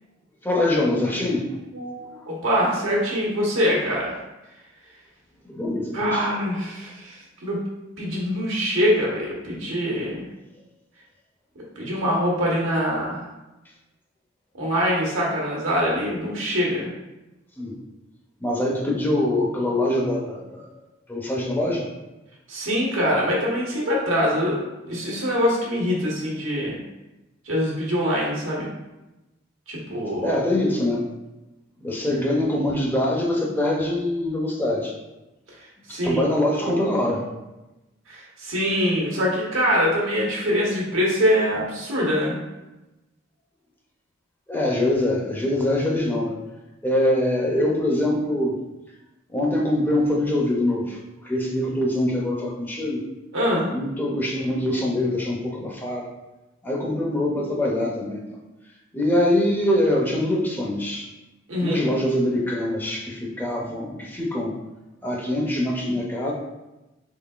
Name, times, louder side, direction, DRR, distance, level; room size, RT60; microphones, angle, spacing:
voice 1, 0.4-1.5 2.1-2.2 5.5-6.4 6.8-6.9 17.6-17.8 18.4-20.6 21.1-21.9 30.2-31.0 31.8-34.9 35.9-37.2 44.5-46.4 46.8-48.6 49.3-53.0 53.7-56.0 56.6-58.2 58.9-61.1 61.6-64.5 65.0-66.3, left 1 dB, 10° left, -2 dB, 0.5 m, -24 dB
voice 2, 1.7-4.2 5.9-7.6 8.0-10.2 11.8-13.2 14.6-16.9 22.5-24.6 24.8-26.8 27.5-28.7 29.7-30.3 35.9-36.2 38.1-42.4 53.3-53.7 61.5-61.8, equal, 85° right, -4 dB, 1.2 m, -24 dB
3.7 x 3.6 x 2.4 m, 1.0 s
head